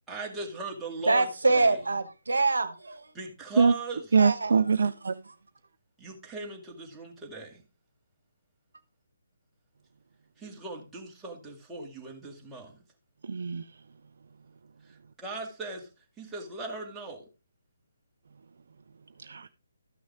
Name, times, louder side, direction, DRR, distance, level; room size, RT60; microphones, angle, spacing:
voice 1, 0.1-1.8 3.1-4.0 6.0-7.6 10.4-12.8 15.2-15.9 16.2-17.2, right 2 dB, 10° right, 2.2 m, -39 dB
voice 2, 1.1-3.1 4.2-4.6, right 3 dB, 70° right, 1.2 m, -25 dB
voice 3, 4.1-5.1 13.2-13.6 19.2-19.5, right 5 dB, 55° right, 0.5 m, -23 dB
13.5 x 6.2 x 3.7 m
figure-of-eight pair, 145°, 0 cm